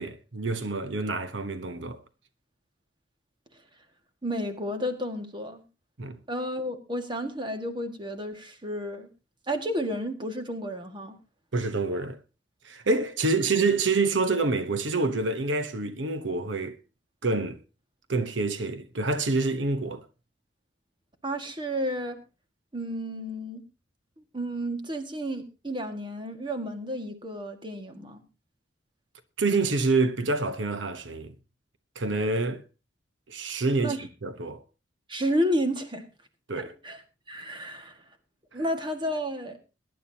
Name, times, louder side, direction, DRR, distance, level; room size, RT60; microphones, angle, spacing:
voice 1, 0.0-2.0 6.0-6.2 11.5-12.2 12.6-16.8 17.2-17.6 18.1-20.0 29.4-31.3 32.0-32.6 33.3-34.0 34.2-34.6 36.5-36.7, right 3 dB, 80° right, 1.0 m, -27 dB
voice 2, 4.2-5.6 6.3-9.1 9.5-11.2 21.2-22.2 22.7-23.6 24.3-28.2 33.8-34.0 35.1-36.1 36.6-37.0 37.3-38.0 38.5-39.6, equal, 25° right, 1.8 m, -31 dB
22.0 x 11.0 x 2.8 m
head